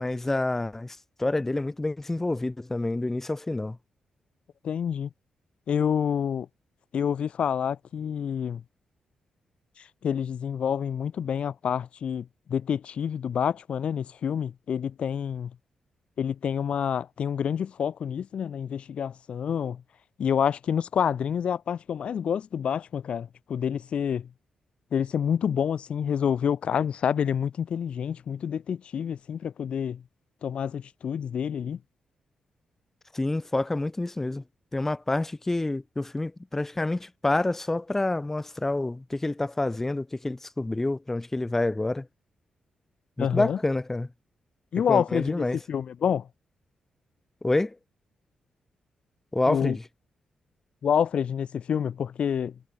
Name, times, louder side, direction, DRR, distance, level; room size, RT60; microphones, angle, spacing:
voice 1, 0.0-3.8 33.1-34.4 34.7-42.1 43.2-44.1 44.9-45.6 47.4-47.8 49.3-49.8, left 2 dB, 15° left, 0.4 m, -28 dB
voice 2, 4.6-5.1 5.7-6.5 6.9-8.6 10.0-15.5 16.2-19.8 20.2-24.3 24.9-30.0 30.4-31.8 43.2-43.6 44.7-46.3 49.5-49.8 50.8-52.5, left 8 dB, 65° left, 1.0 m, -28 dB
cardioid pair, 60°, 2 cm